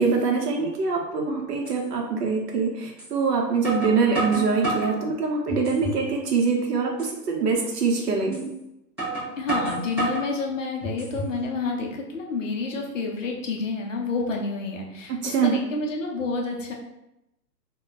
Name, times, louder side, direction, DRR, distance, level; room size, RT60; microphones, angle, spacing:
voice 1, 0.0-8.5 15.2-15.5, right 4 dB, 70° right, 0 dB, 0.9 m, -24 dB
sound 1, 1.1-1.2 1.7-1.8 3.0-3.1 3.6-5.0 5.5-6.0 6.4-6.5 7.0-7.2 8.3-8.5 9.0-10.3 10.8-11.4, right 2 dB, 15° right, 0.6 m, -29 dB
voice 2, 9.4-16.7, left 3 dB, 50° left, 0 dB, 0.6 m, -29 dB
2.2 x 2.2 x 3.9 m, 0.87 s
hypercardioid pair, 175°, 50 cm